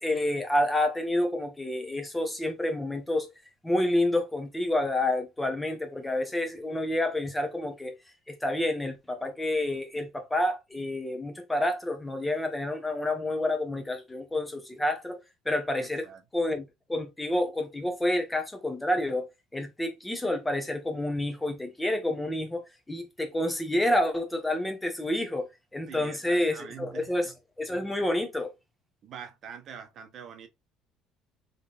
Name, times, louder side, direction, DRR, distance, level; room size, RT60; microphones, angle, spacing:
voice 1, 0.0-3.3 3.6-7.9 8.3-15.2 15.4-16.1 16.3-19.3 19.5-28.5, left 1 dB, 10° left, 1.3 m, -29 dB
voice 2, 15.8-16.2 25.9-27.1 29.0-30.5, right 8 dB, 50° right, 1.0 m, -44 dB
3.8 x 3.3 x 2.5 m
supercardioid pair, 95°, 0 cm